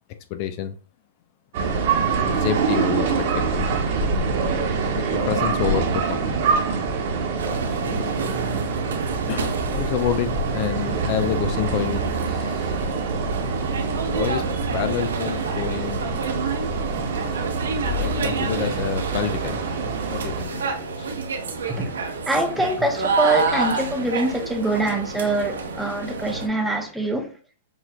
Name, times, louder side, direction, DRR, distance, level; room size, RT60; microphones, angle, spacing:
voice 1, 0.3-0.8 2.3-4.1 4.9-6.4 7.7-8.2 9.3-12.8 13.8-14.4 14.7-16.1 18.0-19.6 20.1-21.1, left 10 dB, 45° left, 0.4 m, -29 dB
sound 1, 1.5-20.5, right 4 dB, 55° right, 1.1 m, -25 dB
sound 2, 7.4-26.5, right 4 dB, 80° right, 1.1 m, -30 dB
voice 2, 22.3-27.3, right 2 dB, ahead, 0.7 m, -24 dB
7.0 x 2.5 x 2.3 m
hypercardioid pair, 125°, 0 cm